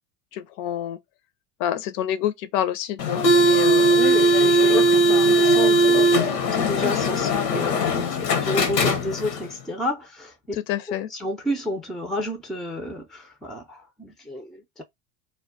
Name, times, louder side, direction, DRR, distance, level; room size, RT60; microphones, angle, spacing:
voice 1, 0.3-1.0 1.6-4.0 7.2-7.5 10.5-11.1, left 11 dB, 55° left, 0.6 m, -28 dB
sound 1, 3.0-9.4, right 1 dB, 85° left, 0.8 m, -19 dB
voice 2, 3.9-10.6 11.1-14.8, left 1 dB, ahead, 0.4 m, -31 dB
2.2 x 2.2 x 3.7 m
hypercardioid pair, 80°, 48 cm